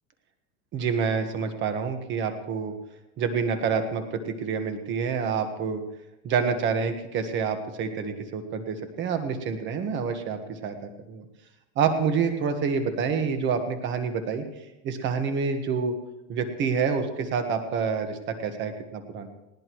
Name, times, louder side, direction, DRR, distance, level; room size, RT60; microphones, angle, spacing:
voice 1, 0.7-2.7 3.2-5.8 6.2-10.8 11.1-11.2 11.7-14.4 14.8-15.9 16.3-19.3, right 6 dB, 30° right, 7 dB, 1.4 m, -27 dB
20.0 x 17.5 x 3.1 m, 0.95 s
supercardioid pair, 160°, 36 cm